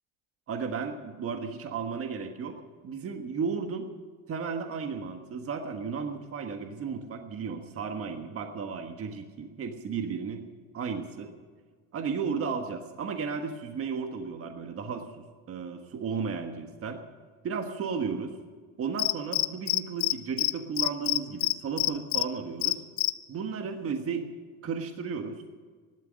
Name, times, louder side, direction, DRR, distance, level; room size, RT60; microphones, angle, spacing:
voice 1, 0.5-2.6 2.8-3.9 4.3-10.4 10.7-11.3 11.9-17.0 17.4-18.3 18.8-22.8 23.3-24.3 24.6-25.4, right 5 dB, 35° right, 5 dB, 1.5 m, -34 dB
Cricket, 19.0-20.1 20.4-20.5 20.8-22.2 22.6-23.1, left 21 dB, 80° left, 0.8 m, -25 dB
16.5 x 12.5 x 6.4 m, 1.5 s
cardioid pair, 125°, 40 cm